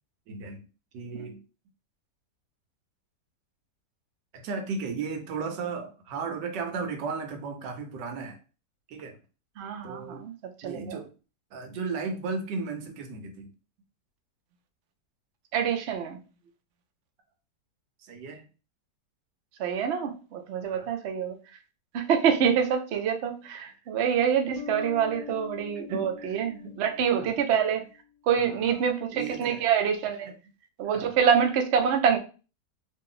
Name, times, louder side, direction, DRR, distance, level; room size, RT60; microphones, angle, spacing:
voice 1, 0.3-0.6 0.9-1.4 4.3-8.4 8.9-9.2 9.8-10.2 10.6-11.1 11.5-13.5 18.0-18.4 20.7-20.9 25.2-25.3 25.9-26.4 26.6-26.7 27.2-27.3 28.4-28.8 29.1-29.6 30.8-31.1, right 4 dB, 90° right, 5 dB, 1.4 m, -35 dB
voice 2, 9.6-11.0 15.5-16.2 19.6-21.4 21.9-27.8 28.3-30.3 30.8-32.2, right 7 dB, 65° right, 4 dB, 0.6 m, -26 dB
sound 1, 24.6-27.9, left 9 dB, 90° left, 1.3 m, -43 dB
3.0 x 2.5 x 3.7 m, 0.34 s
omnidirectional pair, 1.8 m